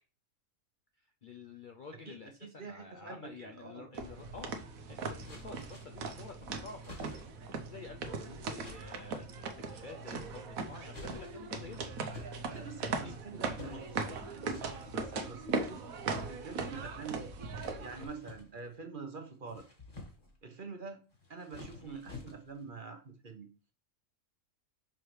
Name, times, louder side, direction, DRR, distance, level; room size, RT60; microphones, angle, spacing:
voice 1, 1.2-9.4 9.7-12.3 12.8-13.1 13.6-13.8 14.1-14.2 21.8-22.0, left 4 dB, 55° left, 4 dB, 0.6 m, -50 dB
voice 2, 2.1-3.9 12.5-13.9 14.3-15.8 16.1-17.3 17.8-19.6 20.4-21.0 21.3-23.5, right 4 dB, 40° right, 5 dB, 1.0 m, -46 dB
sound 1, 3.9-18.0, right 4 dB, 80° right, 1.3 m, -39 dB
sound 2, 5.2-6.1 6.8-7.5 8.6-9.1 10.1-10.5 10.9-11.6 12.1-13.1 13.6-14.2 14.5-15.0 16.1-16.9 17.5-18.8 19.3-20.4 21.1-22.7, left 3 dB, 30° left, 1.7 m, -51 dB
6.4 x 4.7 x 3.2 m, 0.35 s
omnidirectional pair, 1.4 m